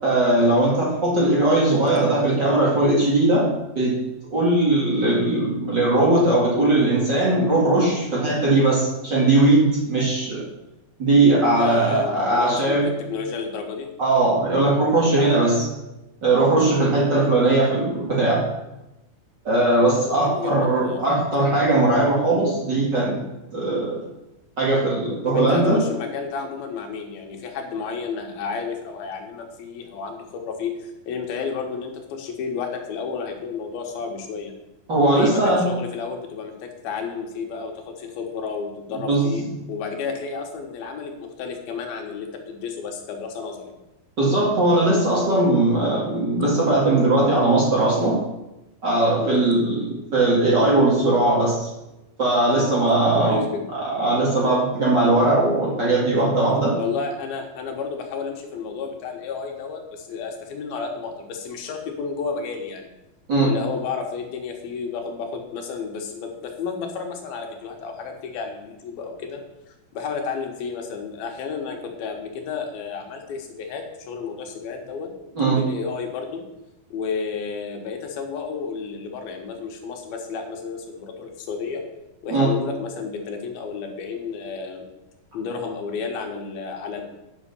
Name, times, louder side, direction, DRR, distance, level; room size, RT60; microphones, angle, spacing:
voice 1, 0.0-4.0 4.3-10.5 11.0-12.9 14.0-15.7 16.2-18.5 19.4-23.2 23.5-24.0 24.6-25.8 34.9-35.7 39.1-39.4 44.2-48.2 48.8-51.7 52.2-53.4 53.7-56.8 63.3-63.6 75.4-75.6 82.3-82.5, right 2 dB, 35° right, -4 dB, 2.1 m, -19 dB
voice 2, 11.5-13.9 20.2-21.0 25.3-34.5 35.1-43.7 49.2-49.4 53.2-53.6 56.7-62.9 63.4-69.4 69.7-75.1 75.5-76.4 76.9-81.8 82.2-84.8 85.3-87.0, left 5 dB, 85° left, 3 dB, 3.2 m, -31 dB
9.4 x 6.3 x 7.0 m, 0.94 s
omnidirectional pair, 4.2 m